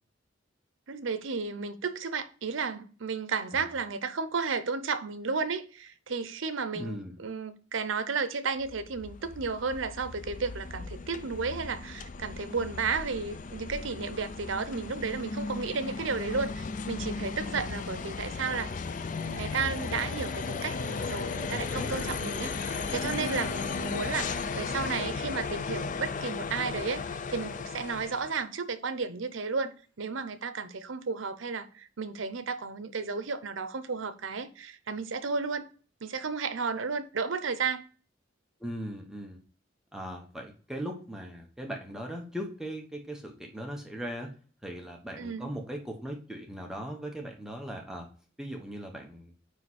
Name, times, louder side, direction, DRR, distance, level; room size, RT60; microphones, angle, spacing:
voice 1, 0.9-18.7 19.2-35.7 36.0-37.8 45.2-45.5, right 5 dB, 85° right, 0.7 m, -33 dB
voice 2, 6.7-7.2 23.3-23.9 38.6-39.4 39.9-44.3 44.6-48.1 48.4-49.3, equal, 5° right, 1.0 m, -39 dB
sound 1, 8.6-28.4, left 4 dB, 40° left, 0.4 m, -36 dB
sound 2, 17.1-29.5 29.8-29.9, right 1 dB, 25° right, 3.7 m, -60 dB
9.1 x 3.2 x 4.2 m
head